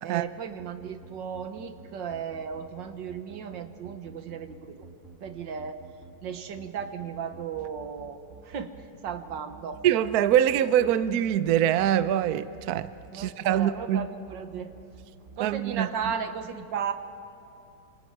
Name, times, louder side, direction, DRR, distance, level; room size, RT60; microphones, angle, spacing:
voice 1, 0.0-4.9 5.2-5.9 6.2-8.8 9.0-9.8 13.1-14.7 15.4-16.9, right 7 dB, 85° right, 1.9 m, -35 dB
sound 1, 0.6-16.1, right 4 dB, 45° right, 1.9 m, -49 dB
voice 2, 9.8-14.1 15.4-15.9, right 10 dB, 65° right, 1.1 m, -24 dB
28.0 x 26.0 x 4.7 m
omnidirectional pair, 1.9 m